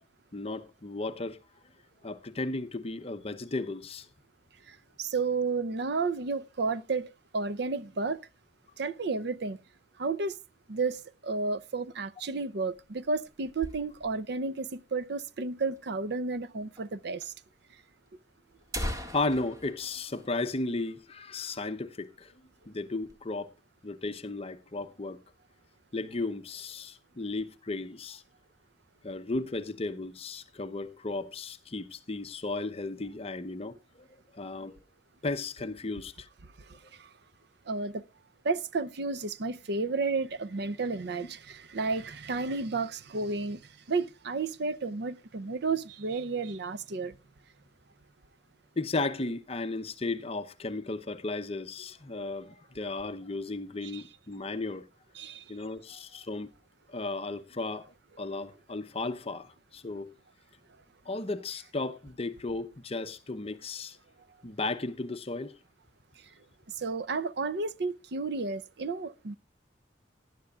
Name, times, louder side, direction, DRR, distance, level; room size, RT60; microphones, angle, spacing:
voice 1, 0.3-1.4 2.0-4.1 19.1-22.3 22.7-23.5 23.8-25.2 25.9-28.2 29.0-34.1 34.3-34.8 35.2-36.3 48.8-54.9 55.5-56.5 56.9-57.9 58.2-60.1 61.1-64.0 64.4-65.6, left 2 dB, 30° left, 0.8 m, -35 dB
voice 2, 4.7-8.2 8.8-9.6 10.0-10.4 10.7-17.3 37.0-37.1 37.7-38.0 38.4-43.6 43.9-47.2 53.8-54.0 55.2-55.4 66.8-69.4, right 4 dB, 60° right, 0.6 m, -32 dB
sound 1, 12.5-14.3 14.7-14.8 15.0-15.1 15.8-15.9 16.8-16.9 17.2-17.3 18.1-18.2 18.5-21.1 21.4-21.6 22.0-22.2 22.6-23.2, left 1 dB, 15° right, 1.8 m, -40 dB
18.5 x 10.5 x 2.4 m
head